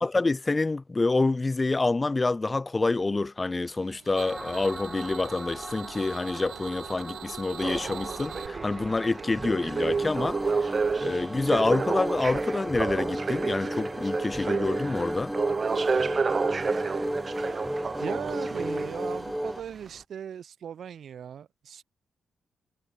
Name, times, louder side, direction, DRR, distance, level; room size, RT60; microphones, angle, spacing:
voice 1, 0.0-10.7 11.0-15.3, left 3 dB, 25° left, 0.4 m, -27 dB
sound 1, 3.6-8.5, right 12 dB, 90° right, 1.3 m, -43 dB
sound 2, 4.1-19.6, equal, 5° right, 0.9 m, -35 dB
sound 3, 7.6-19.2 19.9-20.0, right 4 dB, 40° right, 0.6 m, -30 dB
voice 2, 18.0-21.8, right 8 dB, 70° right, 2.1 m, -38 dB
cardioid pair, 75°, 0 cm